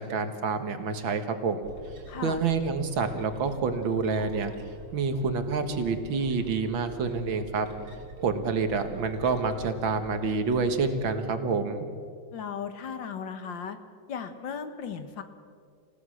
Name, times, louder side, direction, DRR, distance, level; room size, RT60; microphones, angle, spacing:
voice 1, 0.0-1.7 2.2-4.5 4.9-7.7 8.2-11.9, right 4 dB, 90° right, 8 dB, 2.3 m, -28 dB
sound 1, 1.6-11.1, right 2 dB, 75° right, 4.4 m, -46 dB
voice 2, 2.1-2.4 12.3-13.8 14.1-15.2, left 7 dB, 75° left, 10 dB, 2.0 m, -36 dB
27.5 x 16.5 x 6.4 m, 2.2 s
omnidirectional pair, 2.1 m